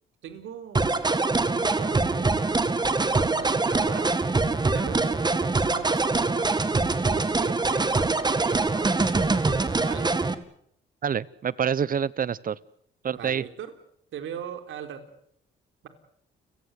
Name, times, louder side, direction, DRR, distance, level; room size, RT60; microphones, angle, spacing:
voice 1, 0.2-0.9 1.5-2.9 3.3-4.1 4.4-6.6 7.0-10.1 13.1-13.7 14.1-15.0, right 8 dB, 75° right, 8 dB, 4.0 m, -39 dB
sound 1, 0.7-10.3, right 3 dB, 20° right, 2.0 m, -24 dB
voice 2, 11.0-12.6 13.0-13.4, right 7 dB, 45° right, 21 dB, 1.0 m, -27 dB
30.0 x 18.0 x 8.1 m, 0.69 s
cardioid pair, 90°, 20 cm